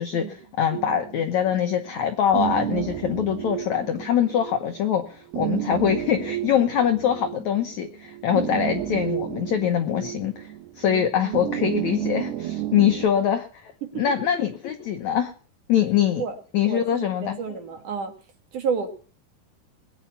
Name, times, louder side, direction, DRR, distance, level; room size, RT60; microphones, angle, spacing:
voice 1, 0.0-15.3 15.7-16.2 16.5-17.4, left 9 dB, 70° left, 6 dB, 1.7 m, -24 dB
sound 1, 0.7-13.1, right 13 dB, 80° right, 3.5 m, -32 dB
voice 2, 10.8-11.8 13.1-13.2 13.8-14.0 16.2-16.3 16.6-18.1 18.5-18.9, right 6 dB, 55° right, 5 dB, 2.9 m, -31 dB
21.0 x 9.2 x 5.7 m, 0.41 s
omnidirectional pair, 4.7 m